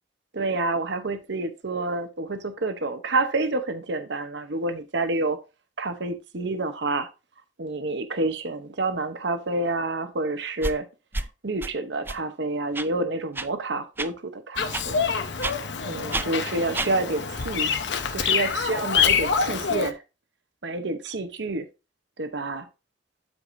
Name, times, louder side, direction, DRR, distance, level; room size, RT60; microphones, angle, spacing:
voice 1, 0.3-5.4 5.8-7.1 7.6-10.8 11.2-15.1 15.8-17.7 18.1-20.0 20.6-21.7 22.2-22.7, right 2 dB, 65° right, 0.9 m, -28 dB
sound 1, 10.6-10.8 11.1-11.3 11.6-11.7 12.1-12.2 12.7-12.9 13.4-13.5 14.0-14.1 14.7-14.9 15.4-15.6 16.1-16.3 16.7-16.9, right 2 dB, 10° right, 0.4 m, -29 dB
Bird vocalization bird call bird song, 14.6-19.9, left 6 dB, 65° left, 0.9 m, -26 dB
12.5 x 4.8 x 2.6 m
head